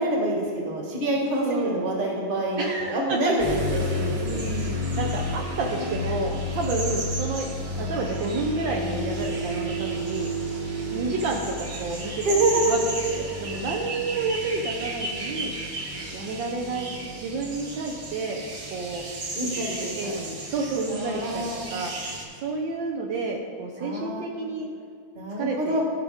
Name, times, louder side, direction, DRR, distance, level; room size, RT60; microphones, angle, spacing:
voice 1, 0.0-4.4 10.7-11.0 12.2-12.8 13.3-13.6 19.3-20.1 20.9-21.7 23.8-24.3 25.1-25.8, right 1 dB, 25° right, -1 dB, 1.4 m, -27 dB
voice 2, 1.5-1.9 2.6-3.6 4.2-7.5 7.8-10.3 10.9-12.2 12.6-12.8 13.1-15.5 16.1-16.9 17.2-18.4 18.7-19.0 19.7-24.7 25.4-25.8, right 3 dB, 70° right, 0 dB, 1.3 m, -30 dB
sound 1, 3.4-22.2, equal, 45° right, 1.6 m, -32 dB
15.0 x 5.3 x 3.5 m, 2.2 s
omnidirectional pair, 2.3 m